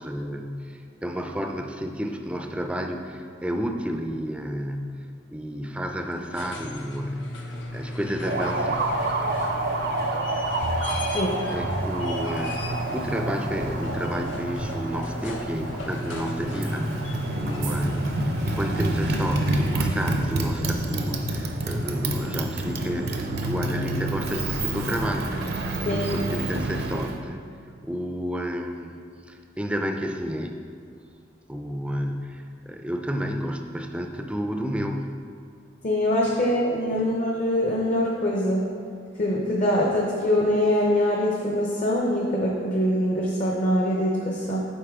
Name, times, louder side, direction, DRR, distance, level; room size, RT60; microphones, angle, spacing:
voice 1, 0.0-5.1 5.3-7.4 7.7-9.0 11.5-27.4 27.8-28.9 29.3-30.6 31.5-35.0 36.9-37.1, equal, 5° right, 4 dB, 0.4 m, -31 dB
sound 1, 6.1-20.5 22.2-22.3, left 2 dB, 85° left, 0.8 m, -37 dB
Motorcycle, 8.2-27.2, right 2 dB, 60° right, 0.6 m, -28 dB
sound 2, 10.6-11.3 11.6-12.2 12.6-13.1 13.6-13.7 14.6-14.7 15.6-15.7 16.6-16.7 17.6-17.8, equal, 85° right, 1.4 m, -33 dB
voice 2, 35.8-38.6 39.2-44.6, left 1 dB, 40° left, -2 dB, 0.7 m, -23 dB
8.2 x 5.3 x 3.6 m, 2.3 s
head